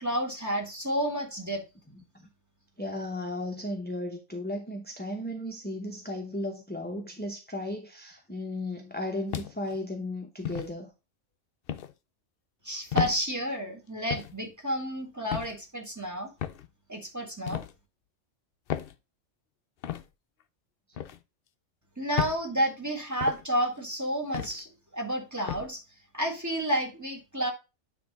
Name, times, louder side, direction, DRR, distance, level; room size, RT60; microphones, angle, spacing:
voice 1, 0.0-1.6 12.6-16.3 16.9-17.6 22.0-25.8 26.1-27.5, right 1 dB, 15° right, 1.8 m, -30 dB
voice 2, 2.8-10.9, left 1 dB, 10° left, 0.8 m, -35 dB
sound 1, 9.3-9.8 10.4-10.7 11.7-11.9 12.9-13.2 14.1-14.3 15.3-15.6 16.4-16.7 17.5-17.7 18.7-18.9 19.8-20.0 21.0-21.2 22.2-22.4 23.2-23.4 24.3-24.6 25.5-25.7, left 11 dB, 60° left, 0.7 m, -32 dB
9.2 x 3.4 x 5.3 m
omnidirectional pair, 1.3 m